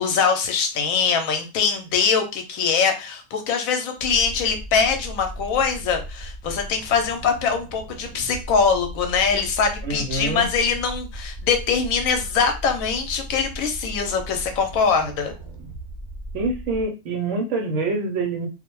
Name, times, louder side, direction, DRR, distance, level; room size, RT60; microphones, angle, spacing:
voice 1, 0.0-15.3, left 5 dB, 90° left, 6 dB, 1.0 m, -23 dB
sound 1, 4.0-16.8, right 1 dB, 20° right, 1.0 m, -37 dB
voice 2, 9.8-10.4 16.3-18.5, right 3 dB, 70° right, 4 dB, 0.9 m, -25 dB
2.4 x 2.0 x 3.0 m, 0.29 s
omnidirectional pair, 1.4 m